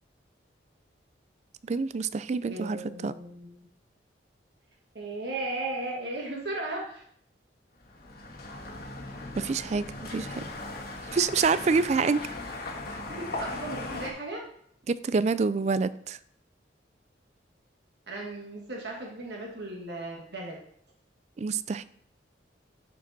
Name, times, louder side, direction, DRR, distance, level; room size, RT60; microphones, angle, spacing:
voice 1, 1.7-3.1 9.4-10.4 11.1-12.2 12.9-13.0 14.9-16.2 21.4-21.8, right 4 dB, 40° right, 15 dB, 0.3 m, -27 dB
voice 2, 2.5-3.7 4.9-7.0 12.8-14.4 18.1-20.6, right 2 dB, 65° right, -1 dB, 1.5 m, -36 dB
sound 1, 7.8-14.1, left 2 dB, 55° left, 1.7 m, -38 dB
12.0 x 5.1 x 4.0 m, 0.67 s
head